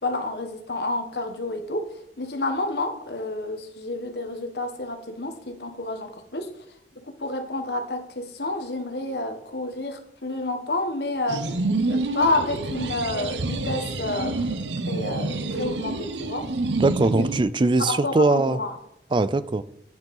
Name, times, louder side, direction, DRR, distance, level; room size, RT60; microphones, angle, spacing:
voice 1, 0.0-1.9 2.2-6.5 7.1-11.5 11.9-16.5 17.2-17.3 17.8-18.7, left 2 dB, 65° left, 1.6 m, -29 dB
sound 1, 11.3-17.4, right 2 dB, 85° right, 0.9 m, -28 dB
voice 2, 16.8-18.6 19.1-19.6, right 3 dB, 25° right, 0.4 m, -21 dB
9.2 x 7.4 x 5.4 m
head